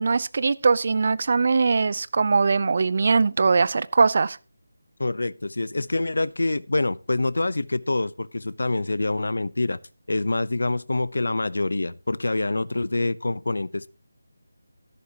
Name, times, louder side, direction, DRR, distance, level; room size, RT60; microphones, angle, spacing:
voice 1, 0.0-4.4, right 4 dB, 45° right, 0.6 m, -21 dB
voice 2, 5.0-9.8 10.1-13.9, left 2 dB, 80° left, 0.7 m, -26 dB
13.5 x 11.5 x 2.9 m
figure-of-eight pair, 170°, 0 cm